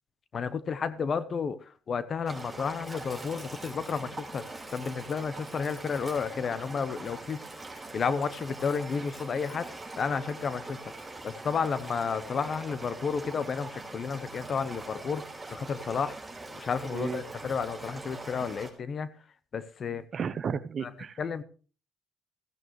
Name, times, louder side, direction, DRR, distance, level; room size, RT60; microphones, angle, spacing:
voice 1, 0.3-7.4 7.7-10.8 11.2-16.2 16.5-19.1 19.5-20.0 20.8-20.9 21.2-21.4, left 6 dB, 50° left, 0.9 m, -32 dB
sound 1, 2.3-18.7, right 2 dB, 15° right, 4.8 m, -43 dB
Domestic sounds home sounds, 2.8-13.1 14.3-16.0 16.4-18.2, equal, 10° left, 5.0 m, -55 dB
voice 2, 16.9-17.2 20.1-21.2, right 7 dB, 55° right, 0.8 m, -33 dB
16.0 x 15.0 x 3.2 m
cardioid pair, 90°, 0 cm